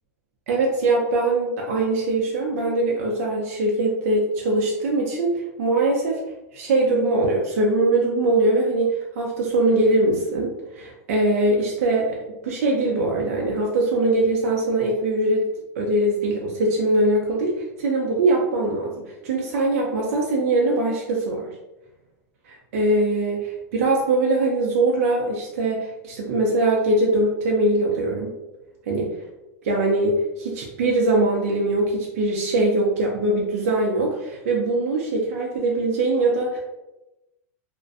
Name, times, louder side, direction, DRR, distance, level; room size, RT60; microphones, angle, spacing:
voice 1, 0.5-6.2 6.5-12.2 12.4-15.4 15.8-18.9 19.2-21.5 22.5-28.3 28.9-29.1 29.6-36.6, right 2 dB, 75° right, -2 dB, 0.5 m, -22 dB
2.5 x 2.1 x 2.4 m, 0.97 s
supercardioid pair, 150°, 8 cm